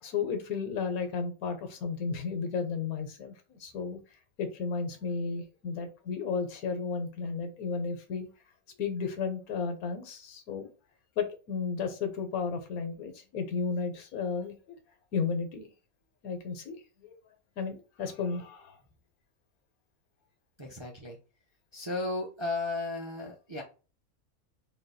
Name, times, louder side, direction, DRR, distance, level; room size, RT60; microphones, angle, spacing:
voice 1, 0.0-4.0 4.4-8.3 8.8-10.7 11.2-14.8 15.1-15.7 16.2-17.2 17.6-18.8, left 5 dB, 90° left, 6 dB, 1.3 m, -33 dB
voice 2, 20.6-21.2 21.7-23.6, left 2 dB, 35° right, 0 dB, 0.4 m, -34 dB
3.8 x 2.3 x 4.0 m, 0.34 s
omnidirectional pair, 1.5 m